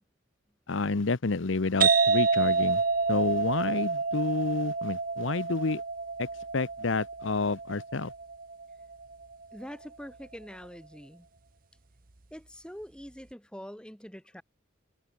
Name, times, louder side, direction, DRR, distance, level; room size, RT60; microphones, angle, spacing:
voice 1, 0.7-2.8 3.1-5.8 6.2-6.3 6.5-8.1, left 3 dB, 80° left, 0.9 m, -29 dB
sound 1, 1.8-9.2, right 4 dB, 45° right, 1.1 m, -28 dB
voice 2, 9.5-11.3 12.3-14.4, equal, 5° left, 5.2 m, -44 dB
head